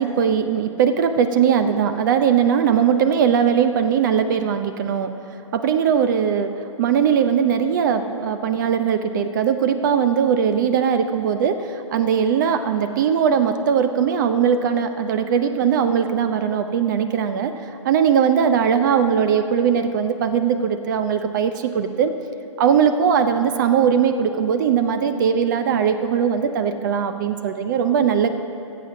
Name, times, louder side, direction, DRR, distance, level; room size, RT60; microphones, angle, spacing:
voice 1, 0.0-5.1 5.5-6.5 6.8-17.5 17.8-22.1 22.6-28.3, right 7 dB, 35° right, 9 dB, 0.6 m, -20 dB
15.0 x 7.6 x 6.3 m, 2.7 s
figure-of-eight pair, 125°, 17 cm